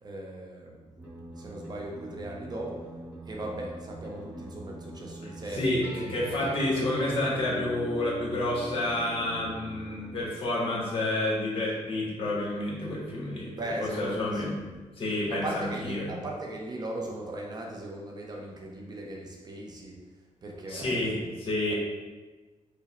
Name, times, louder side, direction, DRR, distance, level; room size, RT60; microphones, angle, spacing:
voice 1, 0.0-0.8 1.4-2.9 3.3-6.3 13.5-14.5 15.3-20.0 20.4-21.4 21.7-21.8, right 1 dB, 35° right, -1 dB, 0.5 m, -38 dB
sound 1, 1.0-10.2, equal, 15° right, 0.9 m, -42 dB
voice 2, 5.5-13.5 14.0-14.5 15.0-16.1 20.7-21.7, left 1 dB, 45° left, -5 dB, 1.0 m, -29 dB
4.7 x 2.1 x 2.9 m, 1.3 s
wide cardioid pair, 145°, 12 cm